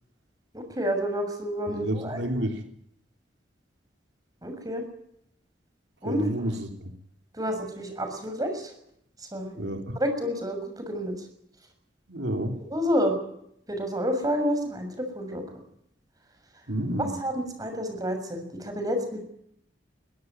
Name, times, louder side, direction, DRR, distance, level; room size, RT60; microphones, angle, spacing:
voice 1, 0.5-2.2 4.4-4.8 6.0-6.3 7.3-8.7 9.3-9.7 10.0-11.1 12.7-13.1 13.7-15.4 17.0-19.2, equal, 20° right, 6 dB, 6.7 m, -29 dB
voice 2, 1.7-2.6 6.0-6.9 9.6-10.0 12.1-12.6 16.7-17.1, right 1 dB, 80° right, 4 dB, 3.5 m, -30 dB
22.5 x 17.0 x 9.5 m, 0.72 s
head